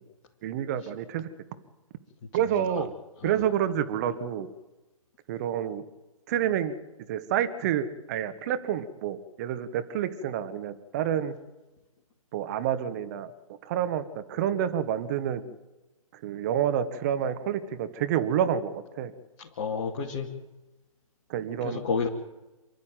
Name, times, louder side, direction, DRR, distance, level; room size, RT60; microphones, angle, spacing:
voice 1, 0.4-1.3 2.3-2.9 3.2-4.5 5.3-5.8 6.3-6.8 7.1-11.3 12.3-13.3 13.6-15.4 16.2-19.1 21.3-21.8, right 9 dB, 30° right, 10 dB, 1.4 m, -28 dB
voice 2, 2.4-2.7 3.2-3.4 19.4-20.3 21.6-22.1, left 5 dB, 35° left, -1 dB, 2.5 m, -31 dB
28.0 x 12.0 x 9.2 m, 1.1 s
figure-of-eight pair, 140°, 18 cm